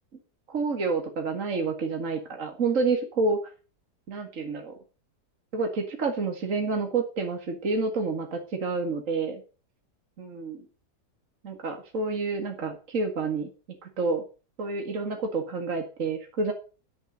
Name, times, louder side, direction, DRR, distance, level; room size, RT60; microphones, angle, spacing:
voice 1, 0.5-3.4 4.1-4.7 5.5-9.4 10.2-10.7 11.4-13.5 13.8-14.2 14.6-16.5, right 4 dB, 50° right, 4 dB, 2.4 m, -29 dB
11.5 x 7.2 x 7.5 m, 0.35 s
omnidirectional pair, 1.7 m